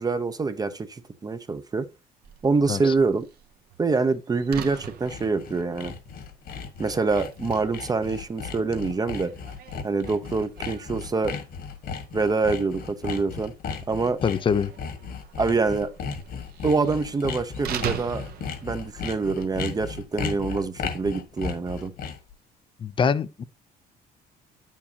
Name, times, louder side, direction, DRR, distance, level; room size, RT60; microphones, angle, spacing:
voice 1, 0.0-1.9 2.4-3.3 3.8-6.0 6.8-9.3 9.8-11.4 12.1-13.5 13.9-14.2 15.4-15.9 16.6-18.2 18.6-21.9, right 4 dB, 20° right, 0.7 m, -25 dB
Slam, 2.2-19.4, right 8 dB, 65° right, 1.0 m, -42 dB
Sawing, 4.5-22.3, left 6 dB, 65° left, 1.7 m, -35 dB
voice 2, 14.2-14.7 22.8-23.4, left 6 dB, 30° left, 0.5 m, -23 dB
8.3 x 7.3 x 2.8 m
cardioid pair, 110°, 17 cm